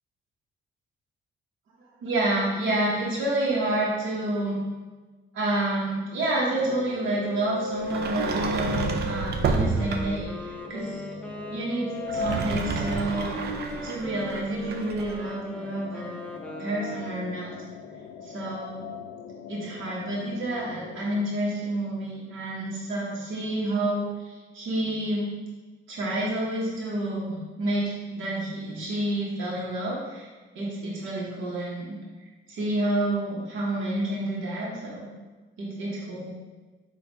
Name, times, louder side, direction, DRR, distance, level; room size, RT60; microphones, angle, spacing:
voice 1, 2.0-4.6 5.3-11.0 11.5-13.3 13.8-16.1 16.6-17.6 18.2-18.9 19.5-25.3 25.9-30.3 30.5-31.9 32.5-35.1 35.6-36.3, right 1 dB, 80° right, -5 dB, 1.2 m, -29 dB
sound 1, 6.6-21.2, left 3 dB, 85° left, 0.4 m, -38 dB
Sliding door, 7.8-10.3 12.0-15.1, right 4 dB, 55° right, 0.5 m, -30 dB
Wind instrument woodwind instrument, 9.7-17.5, left 1 dB, 5° left, 0.4 m, -39 dB
4.0 x 2.6 x 4.6 m, 1.3 s
cardioid pair, 90°, 20 cm